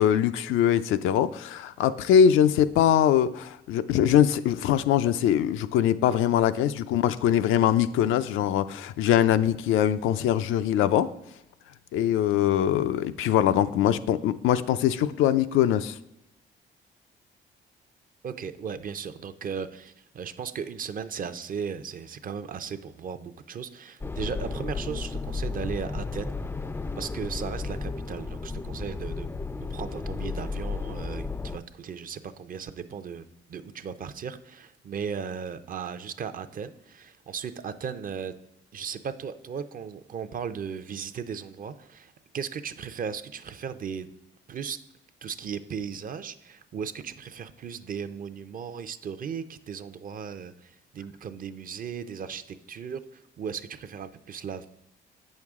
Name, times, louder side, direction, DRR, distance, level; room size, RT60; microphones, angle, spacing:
voice 1, 0.0-11.1 11.9-16.0, left 10 dB, 85° left, 11 dB, 0.4 m, -22 dB
voice 2, 18.2-26.3 27.0-29.3 29.7-38.3 38.7-44.1 44.5-44.8 45.2-54.7, right 7 dB, 45° right, 11 dB, 0.5 m, -36 dB
sound 1, 24.0-31.6, left 3 dB, 10° left, 0.3 m, -33 dB
8.4 x 6.4 x 3.6 m, 0.87 s
cardioid pair, 90°, 20 cm